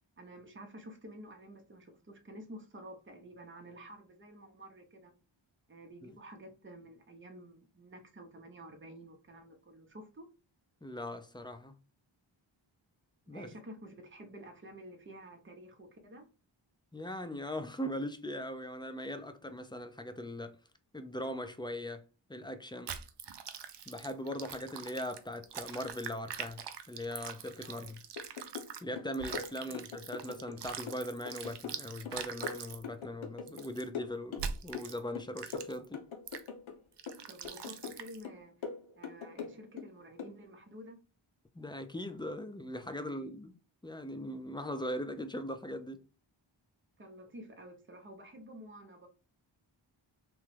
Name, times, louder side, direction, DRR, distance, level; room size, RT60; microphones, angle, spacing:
voice 1, 0.2-5.1 5.7-10.3 13.3-16.3 27.6-27.9 29.6-29.8 37.3-38.7 39.0-41.0 43.0-43.3 47.0-49.1, right 1 dB, 25° right, 0.7 m, -51 dB
voice 2, 10.8-11.8 13.3-13.5 16.9-20.5 20.9-22.0 22.3-22.9 23.9-26.6 26.9-28.0 28.8-36.0 41.6-43.5 43.8-46.0, left 1 dB, 10° left, 0.4 m, -40 dB
sound 1, 22.9-28.8 29.1-32.8 33.5-33.8 34.4-35.0 35.4-35.9 36.3-36.5 37.0-38.2, right 7 dB, 60° right, 0.5 m, -43 dB
sound 2, 28.2-28.7 29.0-30.6 30.9-33.7 33.9-34.9 35.1-36.8 37.1-38.0 38.2-39.9 40.2-40.4, left 6 dB, 75° left, 0.7 m, -42 dB
3.0 x 2.2 x 3.2 m
cardioid pair, 45°, 48 cm